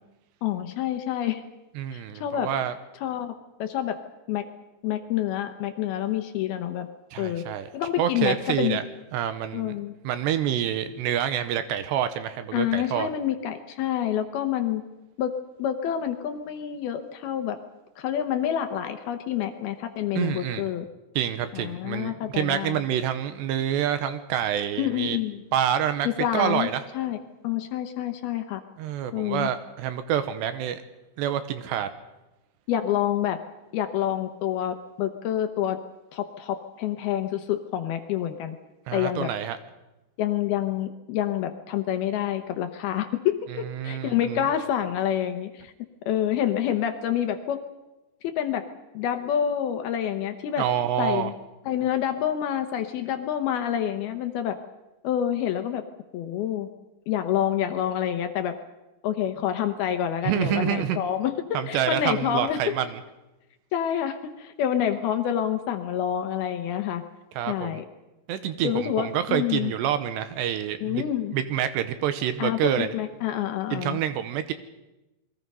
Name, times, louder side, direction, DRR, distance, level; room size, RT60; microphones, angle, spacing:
voice 1, 0.4-1.4 1.9-2.5 3.0-3.3 3.6-4.0 4.3-4.4 4.8-6.9 7.2-7.5 7.7-8.8 9.5-9.9 12.5-14.8 15.2-15.3 15.6-17.6 18.0-20.9 21.5-22.8 24.8-25.4 26.0-26.7 26.9-27.2 27.4-28.6 29.1-29.5 32.7-33.4 33.7-35.8 36.1-38.6 38.9-39.3 40.2-45.7 46.1-47.6 48.2-48.6 48.9-50.7 51.0-51.3 51.7-54.6 55.0-55.8 56.1-56.7 57.1-58.6 59.0-62.6 63.7-67.0 67.5-67.9 68.6-69.7 70.8-71.3 72.4-74.0, left 10 dB, 70° left, 8 dB, 2.6 m, -27 dB
voice 2, 1.8-2.7 7.1-7.7 8.0-8.8 9.1-9.7 10.0-13.1 20.2-20.7 21.2-25.2 25.5-26.1 26.3-26.8 28.8-30.8 31.2-31.9 38.9-39.6 43.7-44.4 50.6-51.3 60.2-61.0 61.5-63.0 67.4-67.8 68.3-71.0 71.3-72.9 73.7-74.5, right 10 dB, 80° right, 11 dB, 3.0 m, -27 dB
28.0 x 22.0 x 5.5 m, 1.0 s
omnidirectional pair, 5.1 m